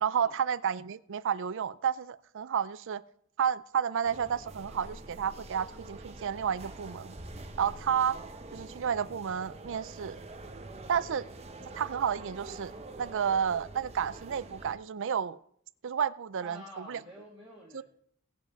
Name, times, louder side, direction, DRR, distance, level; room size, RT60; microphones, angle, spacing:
voice 1, 0.0-3.0 3.4-7.2 7.6-8.2 8.5-10.2 10.9-11.2 11.7-12.7 13.0-15.4 15.8-17.0 17.7-17.8, right 7 dB, 60° right, 16 dB, 0.5 m, -31 dB
sound 1, 4.0-14.8, right 2 dB, 30° right, 0.9 m, -46 dB
voice 2, 16.4-17.8, right 2 dB, 5° right, -6 dB, 2.1 m, -48 dB
18.0 x 7.1 x 4.0 m, 0.66 s
head